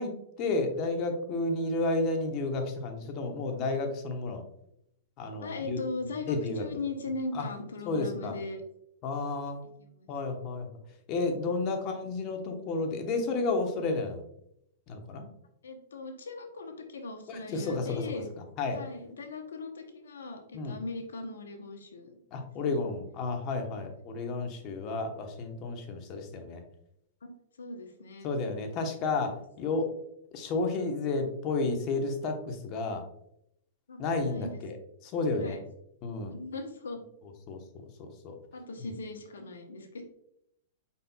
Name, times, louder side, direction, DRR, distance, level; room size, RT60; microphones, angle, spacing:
voice 1, 0.0-4.4 5.2-5.8 6.3-6.6 7.3-7.4 7.9-8.3 9.0-9.6 10.1-10.7 11.1-14.2 14.9-15.2 17.3-18.0 18.6-18.8 20.5-20.8 22.3-26.6 28.2-29.9 30.3-33.0 34.0-34.8 35.0-35.6 36.0-36.3 37.5-37.6 38.0-38.4 38.8-38.9, left 3 dB, 40° left, 4 dB, 1.0 m, -31 dB
voice 2, 5.4-8.6 9.8-10.1 15.6-18.3 18.7-22.1 22.6-22.7 27.2-27.3 27.6-28.3 33.9-34.6 35.4-35.6 36.3-37.0 38.5-40.0, left 3 dB, 85° left, 6 dB, 0.8 m, -39 dB
5.2 x 4.2 x 2.3 m, 0.76 s
hypercardioid pair, 125°, 0 cm